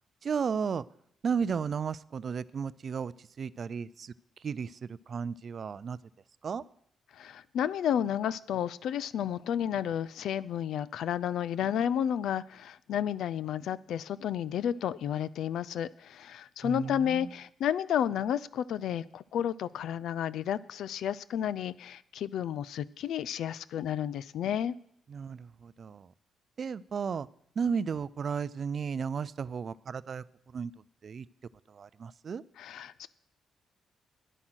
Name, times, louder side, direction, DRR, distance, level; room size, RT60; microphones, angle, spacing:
voice 1, 0.2-0.8 1.2-4.1 4.4-6.0 6.4-6.6 16.6-17.3 25.1-26.1 26.6-27.3 27.6-30.7 31.0-31.3 31.7-32.4, right 6 dB, 45° right, 19 dB, 0.4 m, -34 dB
voice 2, 7.1-24.8 32.6-33.1, left 9 dB, 80° left, 18 dB, 0.4 m, -32 dB
10.0 x 9.7 x 6.3 m, 0.69 s
cardioid pair, 120°, 0 cm